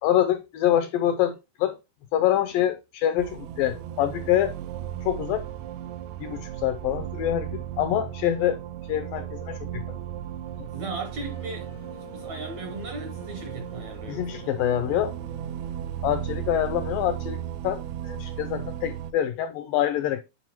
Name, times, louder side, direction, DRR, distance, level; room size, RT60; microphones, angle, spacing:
voice 1, 0.0-1.8 2.1-4.5 5.1-5.5 6.2-8.6 8.9-10.0 10.6-10.7 14.1-15.2 16.0-20.2, left 11 dB, 85° left, 2.0 m, -26 dB
sound 1, 3.2-19.1, right 11 dB, 85° right, 1.9 m, -36 dB
sound 2, 10.3-18.7, left 4 dB, 35° right, 0.5 m, -51 dB
voice 2, 10.7-14.4, right 3 dB, 70° right, 1.8 m, -37 dB
9.7 x 4.6 x 3.0 m
omnidirectional pair, 4.4 m